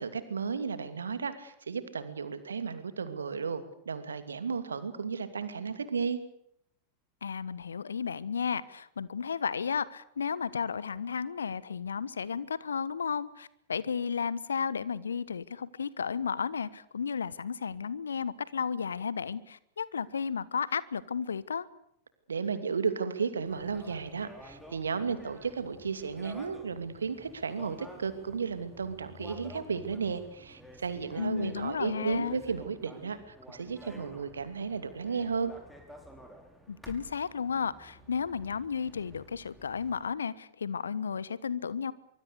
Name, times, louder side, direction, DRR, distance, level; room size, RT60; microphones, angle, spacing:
voice 1, 0.0-6.2 22.3-35.5, right 5 dB, 70° right, 11 dB, 2.6 m, -34 dB
voice 2, 7.2-21.7 31.2-32.4 36.7-41.9, left 6 dB, 70° left, 20 dB, 1.2 m, -33 dB
sound 1, 23.4-40.0, equal, ahead, 6.3 m, -51 dB
24.0 x 24.0 x 6.8 m, 0.72 s
figure-of-eight pair, 90°, 0 cm